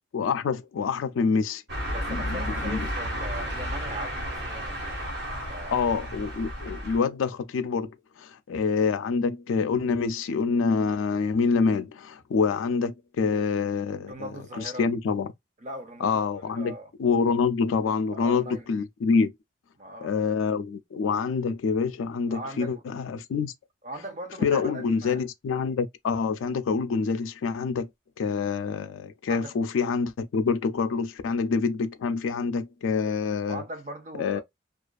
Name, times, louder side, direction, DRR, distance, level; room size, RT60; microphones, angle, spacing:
voice 1, 0.1-1.6 2.1-2.9 5.7-7.9 8.2-14.1 14.8-15.3 16.0-16.7 17.0-19.3 20.0-23.5 24.4-27.9 28.2-33.6 34.2-34.4, left 5 dB, 85° left, 0.3 m, -26 dB
sound 1, 1.7-7.0, equal, 60° right, 1.2 m, -32 dB
voice 2, 1.9-5.0 5.5-5.8 14.0-14.9 15.6-16.9 18.1-18.7 19.8-20.2 22.3-22.8 23.8-25.2 29.3-29.6 33.5-34.4, right 1 dB, 35° right, 0.6 m, -39 dB
2.4 x 2.3 x 2.3 m
head